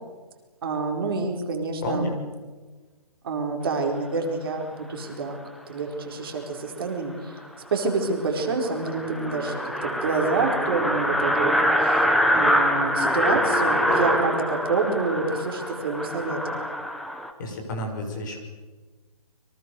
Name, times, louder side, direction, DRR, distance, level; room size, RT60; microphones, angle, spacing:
voice 1, 0.6-2.2 3.2-5.4 5.7-7.4 7.7-9.6 9.8-12.0 12.3-16.6, right 3 dB, 35° right, 2 dB, 4.4 m, -27 dB
voice 2, 1.8-2.2 17.4-18.4, left 1 dB, 30° left, 2 dB, 5.9 m, -30 dB
sound 1, 7.4-7.5 7.9-8.0 8.2-8.3 8.6-17.3, equal, ahead, 0.8 m, -24 dB
30.0 x 24.0 x 6.9 m, 1.3 s
hypercardioid pair, 170°, 19 cm